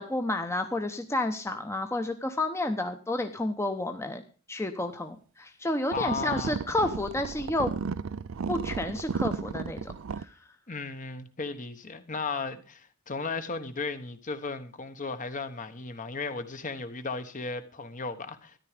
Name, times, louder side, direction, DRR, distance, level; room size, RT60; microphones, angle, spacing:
voice 1, 0.0-4.2 4.5-7.7 8.5-10.3, left 1 dB, 15° left, 0.9 m, -30 dB
voice 2, 5.9-6.6 10.7-18.6, left 4 dB, 40° left, 1.2 m, -35 dB
sound 1, 5.9-10.2, right 5 dB, 90° right, 0.5 m, -34 dB
13.5 x 10.5 x 5.1 m
head